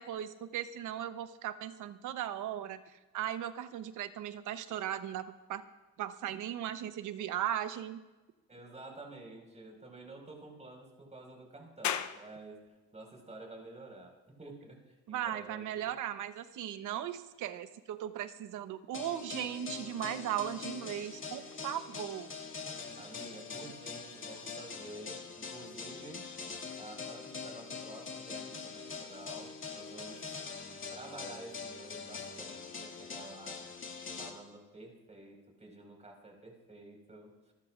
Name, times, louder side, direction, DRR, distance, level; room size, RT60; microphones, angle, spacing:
voice 1, 0.0-5.6 6.0-8.0 15.1-22.3, right 11 dB, 85° right, 10 dB, 1.0 m, -37 dB
voice 2, 8.5-12.6 12.9-15.9 23.0-26.3 26.8-30.3 30.9-33.6 34.2-37.3, right 2 dB, 20° right, 1 dB, 5.0 m, -50 dB
sound 1, 11.8-25.0, left 9 dB, 70° left, 0.8 m, -47 dB
sound 2, 18.9-34.3, left 5 dB, 40° left, 2.4 m, -43 dB
28.0 x 14.0 x 2.5 m, 1.1 s
cardioid pair, 90°, 30 cm